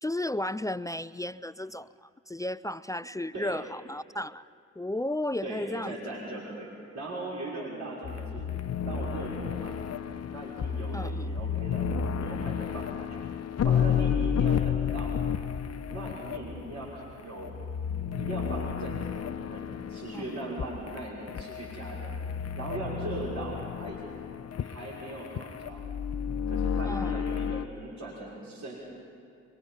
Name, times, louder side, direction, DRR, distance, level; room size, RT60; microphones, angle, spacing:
voice 1, 0.0-4.5 4.8-6.2 10.9-11.4 20.1-20.6 26.8-27.2, left 1 dB, 10° left, 16 dB, 0.4 m, -34 dB
voice 2, 5.4-8.5 8.9-9.8 10.3-13.2 13.6-15.2 15.9-17.6 18.1-22.1 22.6-24.1 24.6-25.8 26.5-28.8, right 2 dB, 55° right, -5 dB, 5.7 m, -39 dB
sound 1, 8.0-27.7, left 7 dB, 50° left, 0.9 m, -32 dB
23.5 x 23.5 x 5.7 m, 2.4 s
hypercardioid pair, 45°, 33 cm